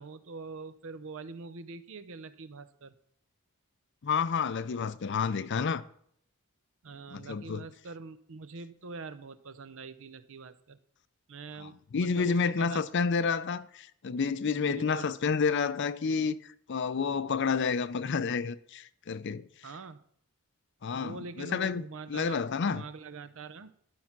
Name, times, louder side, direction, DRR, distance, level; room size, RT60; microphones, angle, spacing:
voice 1, 0.0-2.9 6.8-10.8 11.3-12.8 14.6-15.1 19.6-20.0 20.9-23.7, right 4 dB, 60° right, 0.6 m, -44 dB
voice 2, 4.0-5.8 7.1-7.7 11.6-16.4 16.7-19.4 20.8-21.8 22.1-22.8, left 5 dB, 55° left, 0.5 m, -30 dB
11.5 x 5.6 x 5.9 m
head